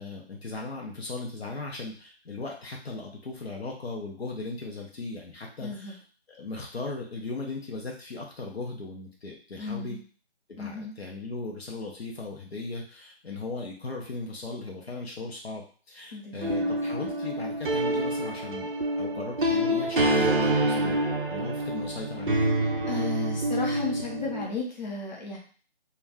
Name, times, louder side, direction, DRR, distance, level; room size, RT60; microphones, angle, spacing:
voice 1, 0.0-6.0 6.3-10.0 10.6-21.0 21.3-22.6, left 3 dB, 70° left, -1 dB, 0.8 m, -37 dB
voice 2, 5.6-6.0 9.6-10.0 10.6-11.0 16.1-17.0 22.8-25.4, left 4 dB, 45° left, -3 dB, 0.9 m, -35 dB
sound 1, 16.4-24.5, right 1 dB, 50° right, 0.5 m, -27 dB
2.4 x 2.2 x 3.4 m, 0.41 s
figure-of-eight pair, 170°, 32 cm